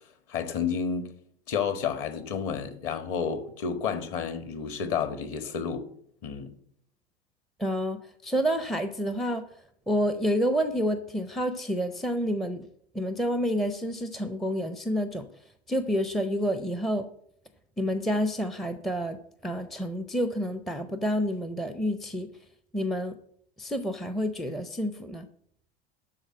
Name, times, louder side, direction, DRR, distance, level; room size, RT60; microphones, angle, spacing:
voice 1, 0.3-1.1 1.5-5.9 6.2-6.5, left 6 dB, 45° left, 1.6 m, -30 dB
voice 2, 7.6-9.5 9.9-12.7 12.9-15.3 15.7-17.1 17.8-22.3 22.7-23.1 23.6-25.3, equal, ahead, 0.5 m, -29 dB
12.0 x 4.0 x 7.6 m
hypercardioid pair, 105°, 32 cm